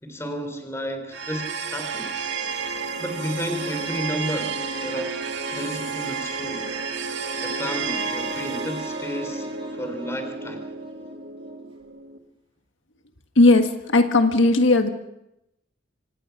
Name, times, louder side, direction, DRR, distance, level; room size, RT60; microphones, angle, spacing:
voice 1, 0.0-2.2 3.0-5.2 5.5-6.7 7.4-9.5 9.7-10.7, equal, 15° left, 7 dB, 3.6 m, -32 dB
sound 1, 1.1-12.2, right 5 dB, 70° right, 2.0 m, -31 dB
Wind instrument woodwind instrument, 7.7-11.7, equal, 30° right, 2.7 m, -38 dB
voice 2, 13.4-14.9, left 2 dB, 80° left, 6 dB, 1.6 m, -17 dB
26.0 x 19.0 x 5.9 m, 0.85 s
head